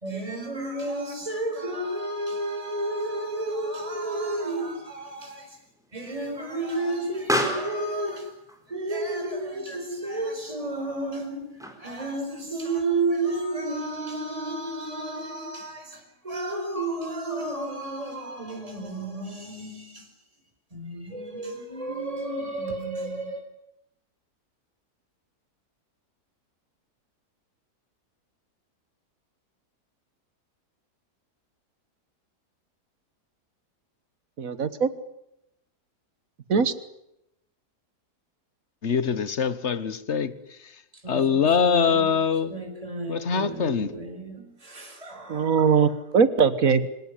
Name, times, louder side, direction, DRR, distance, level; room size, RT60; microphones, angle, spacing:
voice 1, 0.0-5.6 5.9-8.4 8.7-20.1 20.7-23.4 41.0-45.9, right 2 dB, 20° right, 4.7 m, -32 dB
Explosion, 3.1-12.1, equal, ahead, 4.2 m, -36 dB
voice 2, 34.4-34.9 36.5-36.7 45.3-46.9, right 6 dB, 60° right, 1.7 m, -21 dB
voice 3, 38.8-40.3 41.1-42.5 43.1-43.9, left 6 dB, 50° left, 1.5 m, -23 dB
26.0 x 18.0 x 9.7 m
omnidirectional pair, 1.7 m